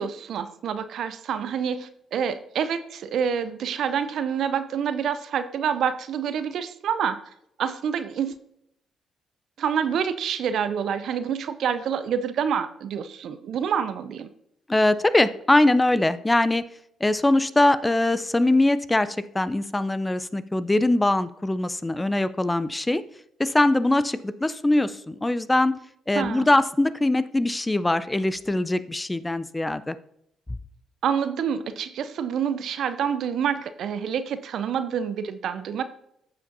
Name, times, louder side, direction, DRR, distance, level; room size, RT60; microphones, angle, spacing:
voice 1, 0.0-7.2 7.6-8.4 9.6-14.3 26.1-26.5 31.0-35.8, right 7 dB, 65° right, 13 dB, 0.5 m, -27 dB
voice 2, 14.7-16.6 17.0-23.0 23.4-25.8 26.1-30.0, left 2 dB, 15° left, 14 dB, 0.5 m, -22 dB
14.5 x 5.1 x 2.7 m, 0.75 s
hypercardioid pair, 45°, 0 cm